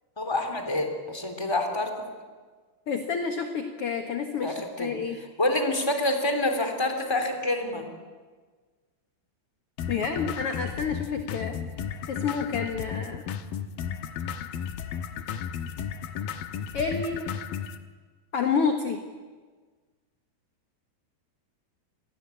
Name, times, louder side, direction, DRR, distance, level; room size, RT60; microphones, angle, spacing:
voice 1, 0.2-2.1 4.4-5.0 5.4-7.9, left 1 dB, 5° left, 5 dB, 2.9 m, -27 dB
voice 2, 2.9-5.2 9.9-11.6 12.1-13.2 16.7-17.3 18.3-19.0, left 5 dB, 55° left, 5 dB, 1.7 m, -29 dB
sound 1, 9.8-17.8, left 8 dB, 70° left, 2.7 m, -34 dB
29.0 x 22.5 x 8.5 m, 1.4 s
omnidirectional pair, 4.7 m